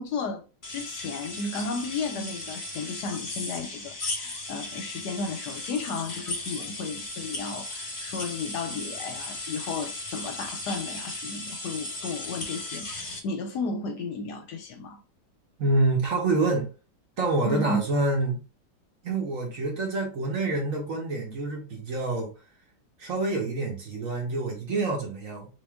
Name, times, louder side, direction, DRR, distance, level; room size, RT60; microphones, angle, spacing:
voice 1, 0.0-15.0 17.4-17.8, left 3 dB, 70° left, 1.1 m, -34 dB
sound 1, 0.6-13.2, left 2 dB, 30° left, 1.1 m, -36 dB
voice 2, 15.6-16.7 17.2-18.4 19.0-22.3 23.0-25.5, right 2 dB, 50° right, 1.3 m, -27 dB
3.7 x 2.7 x 3.4 m
omnidirectional pair, 2.0 m